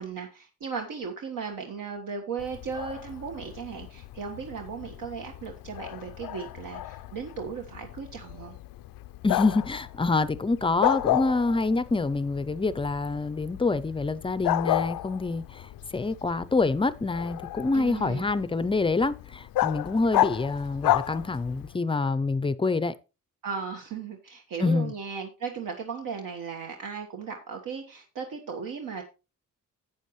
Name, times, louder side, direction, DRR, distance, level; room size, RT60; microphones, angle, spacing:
voice 1, 0.0-8.5 17.7-18.2 23.4-29.0, right 6 dB, 70° right, 1.4 m, -36 dB
Bark, 2.4-21.8, left 14 dB, 90° left, 0.5 m, -32 dB
voice 2, 9.2-22.9 24.6-24.9, left 3 dB, 15° left, 0.4 m, -26 dB
12.0 x 8.4 x 3.1 m
cardioid pair, 135°, 34 cm